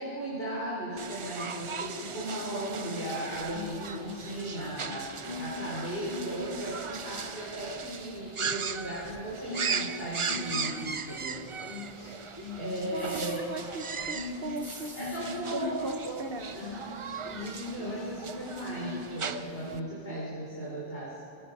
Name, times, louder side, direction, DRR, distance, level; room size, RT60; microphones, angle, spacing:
voice 1, 0.0-11.4 12.6-13.4 15.0-16.2 16.5-17.1 17.3-21.2, right 1 dB, 65° left, -8 dB, 4.5 m, -36 dB
sound 1, 1.0-19.8, right 6 dB, 40° right, 0.5 m, -38 dB
sound 2, 3.3-20.0, left 2 dB, 45° left, 2.7 m, -43 dB
voice 2, 12.9-15.0 15.5-16.6, right 3 dB, 60° right, 6 dB, 1.1 m, -38 dB
sound 3, 13.0-13.4 14.6-15.2, equal, ahead, 2.5 m, -46 dB
24.5 x 20.5 x 5.4 m, 2.6 s
omnidirectional pair, 1.1 m